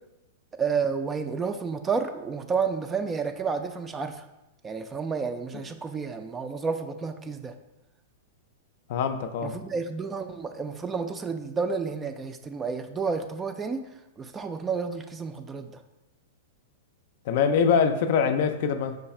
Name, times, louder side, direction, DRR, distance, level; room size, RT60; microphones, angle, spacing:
voice 1, 0.6-4.3 4.6-7.5 9.4-13.8 14.2-15.8, right 5 dB, 15° right, 8 dB, 0.3 m, -30 dB
voice 2, 8.9-9.6 17.3-19.0, left 6 dB, 60° left, 8 dB, 0.4 m, -23 dB
4.9 x 2.3 x 4.2 m, 0.96 s
hypercardioid pair, 125°, 0 cm